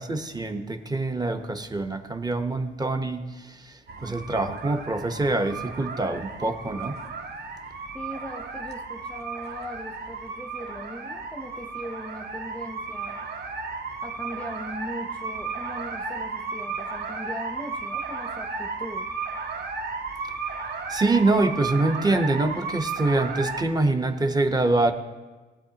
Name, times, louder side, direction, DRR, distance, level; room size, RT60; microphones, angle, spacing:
voice 1, 0.0-7.0 20.9-24.9, right 2 dB, 20° right, 7 dB, 1.0 m, -25 dB
sound 1, 3.9-23.6, right 4 dB, 55° right, 1.6 m, -34 dB
voice 2, 7.9-13.3 14.0-19.1, equal, 5° left, 4 dB, 0.8 m, -39 dB
18.0 x 9.0 x 2.9 m, 1.3 s
cardioid pair, 90°, 20 cm